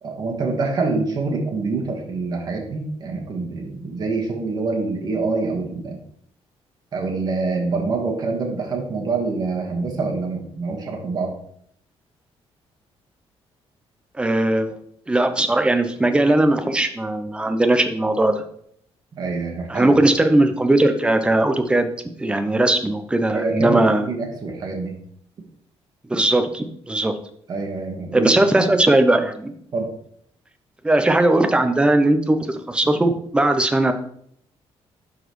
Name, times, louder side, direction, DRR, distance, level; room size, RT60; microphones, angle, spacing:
voice 1, 0.0-6.0 6.9-11.3 19.1-19.9 23.3-25.0 27.5-28.3 29.7-29.9, right 3 dB, 40° right, 0 dB, 1.4 m, -26 dB
voice 2, 14.2-14.8 15.1-18.4 19.7-21.9 22.2-24.0 26.1-27.1 28.1-29.5 30.8-32.4 32.7-33.9, right 1 dB, 10° right, 8 dB, 0.6 m, -18 dB
12.0 x 4.1 x 3.1 m, 0.67 s
cardioid pair, 165°, 11 cm